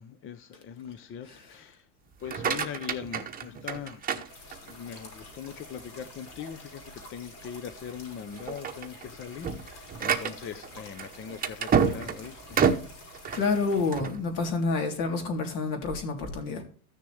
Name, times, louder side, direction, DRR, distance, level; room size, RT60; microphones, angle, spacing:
voice 1, 0.0-1.9 2.2-4.2 4.6-12.7, left 8 dB, 30° left, 0.7 m, -41 dB
sound 1, 2.1-4.9 5.4-5.9 6.4-6.5 6.9-7.0 7.7-8.0 8.3-14.2, right 6 dB, 20° right, 1.0 m, -29 dB
sound 2, 4.3-13.9, left 1 dB, 80° left, 5.6 m, -48 dB
voice 2, 13.3-16.6, left 3 dB, 60° left, 3.4 m, -28 dB
14.0 x 6.7 x 3.3 m
supercardioid pair, 140°, 43 cm